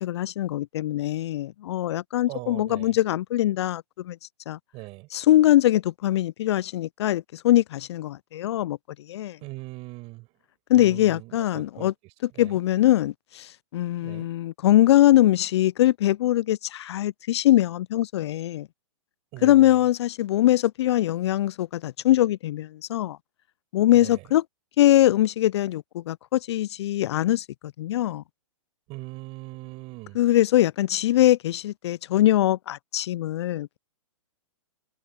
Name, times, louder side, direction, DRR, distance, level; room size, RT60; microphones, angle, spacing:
voice 1, 0.0-4.2 4.5-4.6 5.1-8.8 9.1-9.4 10.7-11.9 12.2-18.7 19.4-23.2 23.7-24.4 24.8-27.5 27.8-28.2 30.1-33.8, left 14 dB, 55° left, 0.4 m, -22 dB
voice 2, 2.3-3.0 4.7-5.1 9.4-10.3 10.7-11.9 12.3-12.6 14.0-14.3 19.3-19.8 23.9-24.2 28.9-30.2, right 23 dB, 35° right, 7.8 m, -40 dB
hypercardioid pair, 125°, 17 cm